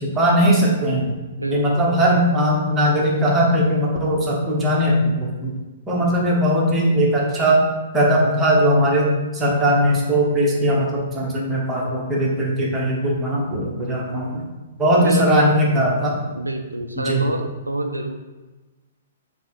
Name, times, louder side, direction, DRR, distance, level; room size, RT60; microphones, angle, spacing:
voice 1, 0.0-1.1 1.5-5.5 5.9-7.6 7.9-14.4 14.8-16.2 17.0-17.2, equal, 10° right, -4 dB, 1.0 m, -19 dB
voice 2, 1.4-1.8 6.0-6.2 10.6-10.9 13.7-14.2 15.0-15.3 15.6-16.0 16.3-18.1, right 2 dB, 85° right, 5 dB, 0.3 m, -28 dB
3.9 x 2.6 x 4.3 m, 1.2 s
figure-of-eight pair, 115°, 0 cm